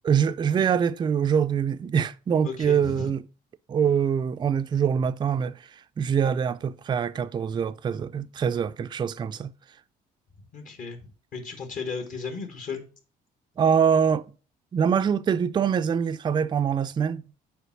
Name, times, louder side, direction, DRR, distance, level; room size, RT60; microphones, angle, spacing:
voice 1, 0.1-3.2 3.7-9.5 13.6-14.2 14.7-17.2, right 7 dB, 25° right, 0.4 m, -24 dB
voice 2, 2.4-3.1 10.5-11.0 11.3-12.8, left 4 dB, 50° left, 1.6 m, -35 dB
6.9 x 4.5 x 5.9 m
cardioid pair, 110°, 17 cm